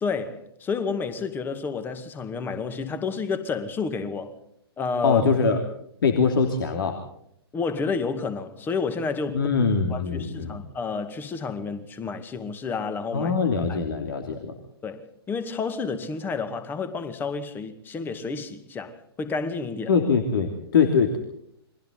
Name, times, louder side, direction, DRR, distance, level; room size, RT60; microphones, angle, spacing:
voice 1, 0.0-4.3 4.8-5.2 7.5-9.5 9.9-13.3 13.7-13.8 14.8-19.9, left 4 dB, 15° left, 2.1 m, -30 dB
voice 2, 5.0-5.6 6.0-7.0 9.3-10.6 13.1-14.6 19.9-21.2, left 5 dB, 55° left, 2.9 m, -23 dB
29.5 x 23.0 x 4.0 m
figure-of-eight pair, 120°, 14 cm